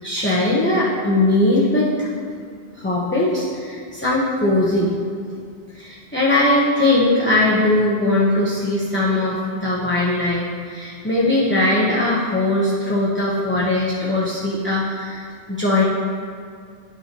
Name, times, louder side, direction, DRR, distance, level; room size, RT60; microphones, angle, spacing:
voice 1, 0.0-2.1 2.7-5.0 5.7-15.8, left 2 dB, 10° left, -7 dB, 0.9 m, -20 dB
11.0 x 5.5 x 3.0 m, 2.3 s
omnidirectional pair, 1.0 m